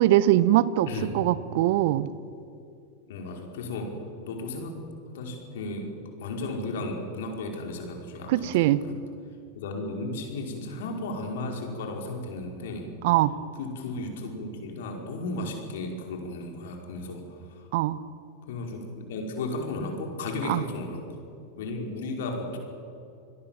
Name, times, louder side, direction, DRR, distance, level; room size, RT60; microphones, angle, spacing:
voice 1, 0.0-0.9 1.1-2.1 8.3-8.8 13.0-13.3 17.7-18.0 20.4-20.6, right 14 dB, 60° right, 17 dB, 1.0 m, -22 dB
voice 2, 0.9-1.2 3.1-4.0 4.2-4.8 5.1-5.9 6.2-8.9 9.6-12.9 13.6-17.7 18.5-21.0 21.6-22.6, left 2 dB, 65° left, 2 dB, 5.2 m, -34 dB
28.5 x 21.0 x 7.4 m, 2.6 s
hypercardioid pair, 90°, 0 cm